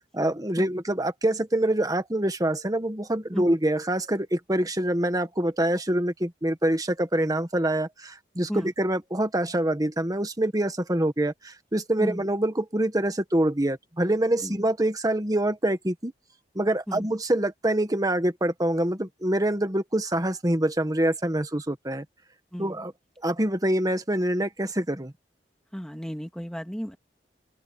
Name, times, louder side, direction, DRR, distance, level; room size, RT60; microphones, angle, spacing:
voice 1, 0.1-16.1 16.5-22.0 22.6-22.9 23.2-25.1, right 1 dB, 20° right, 1.5 m, -25 dB
voice 2, 25.7-27.0, equal, 5° left, 1.8 m, -33 dB
open air
head